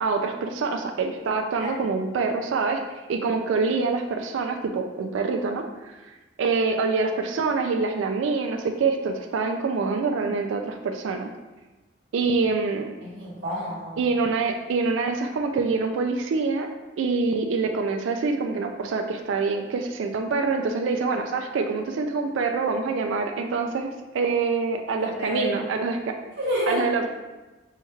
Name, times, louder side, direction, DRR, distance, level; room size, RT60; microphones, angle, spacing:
voice 1, 0.0-2.8 3.1-5.7 6.4-11.3 12.1-12.9 14.0-16.7 17.0-26.1 26.7-27.1, right 4 dB, 85° right, 4 dB, 0.3 m, -25 dB
voice 2, 13.0-14.0 25.0-25.6 26.4-26.8, equal, 70° right, -7 dB, 1.2 m, -29 dB
5.6 x 2.3 x 3.1 m, 1.1 s
head